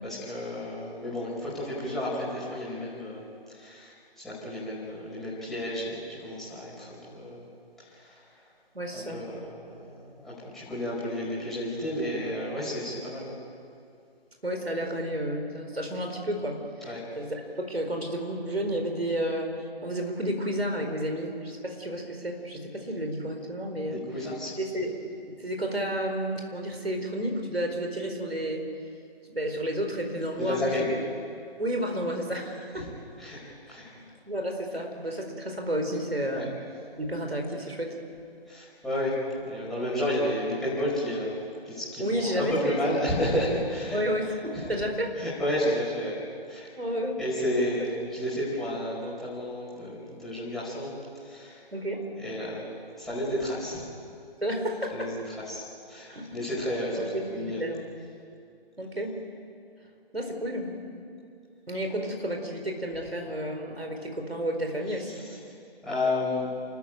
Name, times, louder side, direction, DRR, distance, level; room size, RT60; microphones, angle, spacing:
voice 1, 0.0-7.4 7.8-8.4 8.9-13.4 16.8-17.1 23.9-24.5 30.4-30.9 32.7-32.9 33.2-33.9 36.3-36.5 38.5-41.4 41.6-44.0 44.6-44.7 45.2-46.2 46.5-46.7 47.2-50.9 51.2-51.6 52.2-52.7 53.0-53.8 54.9-57.6 65.1-65.5 65.8-66.5, left 1 dB, ahead, -9 dB, 4.8 m, -32 dB
voice 2, 8.7-9.2 14.4-24.0 24.6-25.0 25.3-28.7 29.2-30.9 31.6-32.9 34.0-36.5 37.0-38.0 42.0-43.0 43.9-45.2 46.8-47.2 51.7-52.0 54.4-55.1 56.1-56.3 57.0-57.9 58.8-59.2 60.1-60.8 61.7-65.2, equal, 80° right, 3 dB, 4.5 m, -31 dB
28.0 x 14.0 x 9.0 m, 2.4 s
figure-of-eight pair, 145°, 30 cm